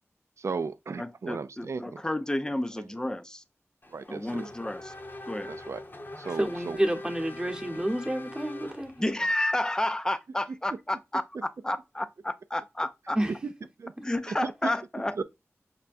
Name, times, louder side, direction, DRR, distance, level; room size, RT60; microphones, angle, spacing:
voice 1, 0.4-2.0 2.8-2.9 3.9-4.5 5.5-5.8 6.2-6.8 13.4-13.5 13.8-13.9 14.3-14.5 15.2-15.3, right 4 dB, 65° right, 0.3 m, -35 dB
voice 2, 1.0-3.4 4.1-4.9 5.3-5.5 9.0-11.2 11.6-13.2 14.0-15.1, left 1 dB, 15° left, 0.5 m, -31 dB
Race car auto racing / Accelerating revving vroom, 3.8-9.3, left 2 dB, 40° left, 0.8 m, -43 dB
voice 3, 6.4-9.2 13.1-13.3, right 1 dB, 15° right, 1.0 m, -29 dB
5.6 x 2.2 x 2.5 m
wide cardioid pair, 50°, 5 cm